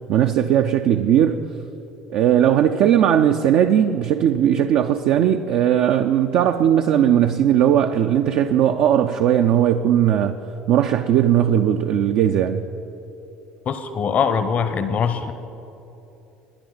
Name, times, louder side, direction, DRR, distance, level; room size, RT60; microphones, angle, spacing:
voice 1, 0.1-1.4 2.1-10.4 10.7-12.6, right 10 dB, 55° right, 0.4 m, -18 dB
voice 2, 13.7-15.3, left 6 dB, 45° left, 0.7 m, -22 dB
20.5 x 10.5 x 3.9 m
figure-of-eight pair, 60°, 3 cm